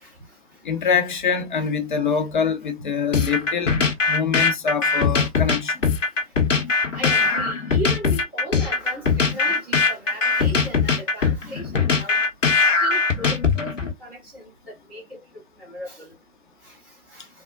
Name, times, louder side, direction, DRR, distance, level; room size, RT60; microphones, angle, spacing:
voice 1, 0.6-3.8 4.1-5.8, left 6 dB, 40° left, 0.7 m, -24 dB
sound 1, 3.1-13.9, left 5 dB, 75° left, 1.0 m, -21 dB
voice 2, 6.7-12.2 12.5-15.2 15.6-16.1 16.6-16.8 17.1-17.3, right 1 dB, 5° right, 0.7 m, -36 dB
3.4 x 2.0 x 2.4 m
figure-of-eight pair, 140°, 38 cm